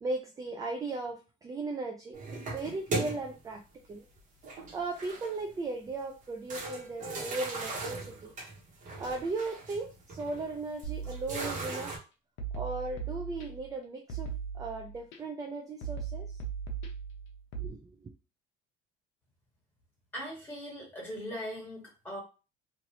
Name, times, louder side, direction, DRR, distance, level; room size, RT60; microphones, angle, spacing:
voice 1, 0.0-3.6 3.9-4.0 4.7-8.3 9.0-11.9 12.5-16.4 17.6-18.1, right 3 dB, 15° right, 2 dB, 0.4 m, -37 dB
sound 1, 2.1-3.5 4.4-5.5 5.9-6.0 6.5-12.0, right 3 dB, 40° right, 1.1 m, -38 dB
sound 2, 10.8-11.7 12.4-13.7 14.1-15.2 15.8-17.7, right 6 dB, 70° left, 0.8 m, -38 dB
voice 2, 20.1-22.2, equal, 10° left, -4 dB, 1.5 m, -40 dB
3.1 x 2.5 x 2.8 m, 0.31 s
cardioid pair, 145°, 20 cm